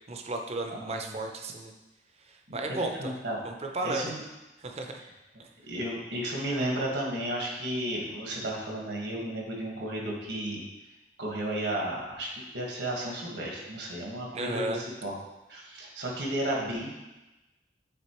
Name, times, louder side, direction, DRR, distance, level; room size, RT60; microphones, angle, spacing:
voice 1, 0.1-1.7 2.3-3.1 3.4-4.1 4.6-5.0 14.3-14.8, right 2 dB, 35° right, 4 dB, 0.6 m, -34 dB
voice 2, 0.7-1.2 2.5-2.6 3.0-3.4 3.8-4.2 5.7-10.6 11.2-15.1 15.5-16.9, right 1 dB, 80° right, -2 dB, 1.5 m, -33 dB
8.4 x 3.8 x 3.0 m, 1.0 s
head